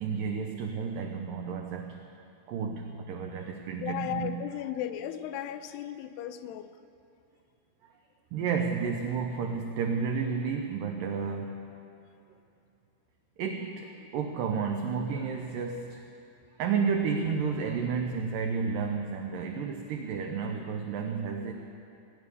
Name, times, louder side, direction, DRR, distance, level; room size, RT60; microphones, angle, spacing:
voice 1, 0.0-2.0 2.5-4.5 7.8-7.9 8.3-11.7 13.4-16.0 16.6-21.5, right 5 dB, 85° right, 4 dB, 1.9 m, -31 dB
voice 2, 3.8-6.7, left 11 dB, 85° left, 11 dB, 2.6 m, -35 dB
17.5 x 6.8 x 9.7 m, 2.7 s
omnidirectional pair, 4.7 m